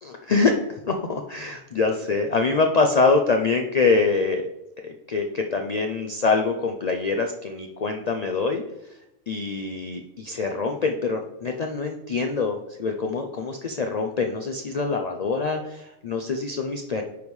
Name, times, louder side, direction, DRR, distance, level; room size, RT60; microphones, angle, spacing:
voice 1, 0.0-4.4 4.8-8.6 9.3-17.0, left 4 dB, 65° left, 3 dB, 0.4 m, -24 dB
9.4 x 5.3 x 3.2 m, 0.89 s
omnidirectional pair, 1.4 m